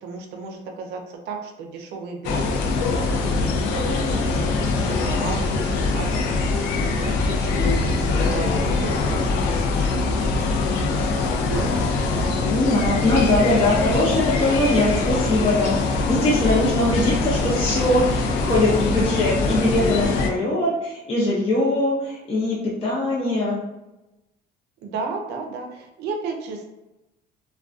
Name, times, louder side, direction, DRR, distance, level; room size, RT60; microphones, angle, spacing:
voice 1, 0.0-4.0 4.3-9.3 9.6-9.9 10.2-11.8 24.8-26.6, right 4 dB, 85° right, 3 dB, 0.5 m, -34 dB
sound 1, 2.2-20.3, left 3 dB, 85° left, 0.4 m, -23 dB
voice 2, 12.5-23.6, left 1 dB, 35° left, -5 dB, 0.6 m, -21 dB
2.3 x 2.2 x 2.4 m, 0.99 s
cardioid pair, 110°, 17 cm